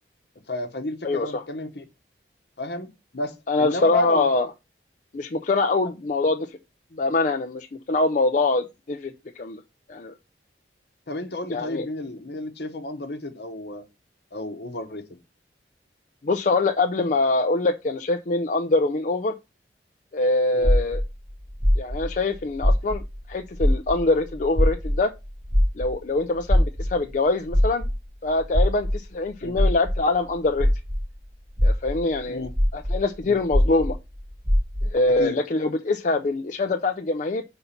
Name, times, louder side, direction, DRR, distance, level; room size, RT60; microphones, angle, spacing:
voice 1, 0.5-1.8 2.6-4.3 11.1-13.8 14.3-15.2 20.5-20.7 29.4-29.6 32.3-32.5 33.3-33.4 35.0-35.4, left 2 dB, 65° left, 1.1 m, -31 dB
voice 2, 1.0-1.4 3.5-4.5 5.1-6.5 7.0-9.6 9.9-10.1 11.5-11.9 16.2-19.3 20.1-21.0 21.8-23.0 23.3-25.1 25.8-27.9 28.2-30.7 31.6-32.5 32.7-34.0 34.9-37.4, left 3 dB, 45° left, 0.4 m, -24 dB
sound 1, 20.6-23.3 23.5-31.1 31.5-35.0, equal, 25° right, 2.1 m, -22 dB
5.6 x 3.9 x 5.7 m
head